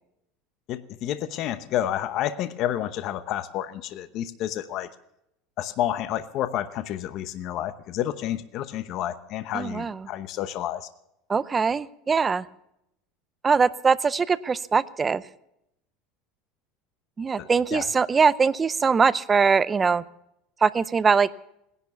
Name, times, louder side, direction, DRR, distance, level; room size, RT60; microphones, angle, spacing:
voice 1, 0.7-4.9 5.6-10.9 17.4-17.9, left 11 dB, 45° left, 12 dB, 0.9 m, -30 dB
voice 2, 9.5-10.1 11.3-12.4 13.4-15.2 17.2-20.0 20.6-21.3, right 5 dB, 20° right, 17 dB, 0.5 m, -22 dB
18.0 x 11.0 x 7.0 m, 0.80 s
cardioid pair, 150°, 0 cm